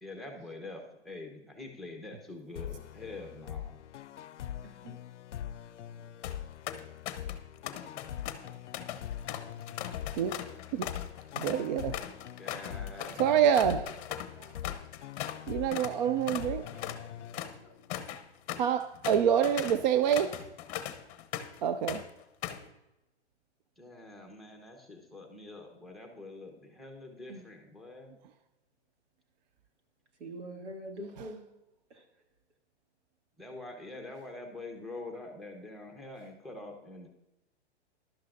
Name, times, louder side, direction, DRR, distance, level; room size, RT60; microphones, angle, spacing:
voice 1, 0.0-3.8 12.4-13.4 23.8-28.2 33.4-37.1, left 2 dB, ahead, 0 dB, 1.0 m, -45 dB
sound 1, 2.6-18.0, left 10 dB, 85° left, 0.5 m, -43 dB
voice 2, 4.6-5.0 27.3-27.4 30.2-31.5 31.9-32.2, right 1 dB, 85° right, 1 dB, 2.5 m, -44 dB
sound 2, 6.2-6.4 6.7-7.4 7.7-15.4 15.7-16.0 16.3-21.6 21.9-22.7, left 11 dB, 35° left, 0.9 m, -39 dB
voice 3, 11.4-12.0 13.1-14.0 14.4-14.5 15.5-16.7 17.4-17.5 18.5-20.5 21.6-22.1, right 8 dB, 40° right, 10 dB, 0.4 m, -27 dB
15.0 x 12.0 x 2.6 m, 0.95 s
hypercardioid pair, 135°, 35 cm